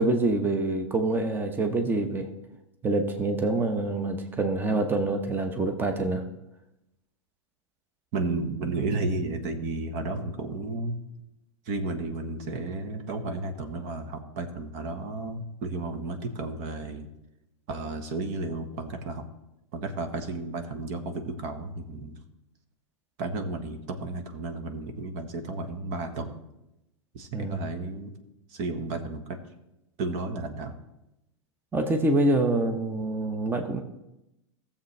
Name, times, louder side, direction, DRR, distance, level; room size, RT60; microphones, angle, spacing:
voice 1, 0.0-2.3 2.8-6.2 27.3-27.6 31.7-33.8, right 2 dB, 15° right, 6 dB, 0.9 m, -26 dB
voice 2, 8.1-11.0 11.7-17.1 17.7-19.3 19.7-22.2 23.2-26.4 27.1-28.1 28.5-29.4 30.0-30.8, right 3 dB, 45° right, 7 dB, 1.3 m, -33 dB
15.5 x 7.2 x 3.3 m, 0.90 s
hypercardioid pair, 100°, 16 cm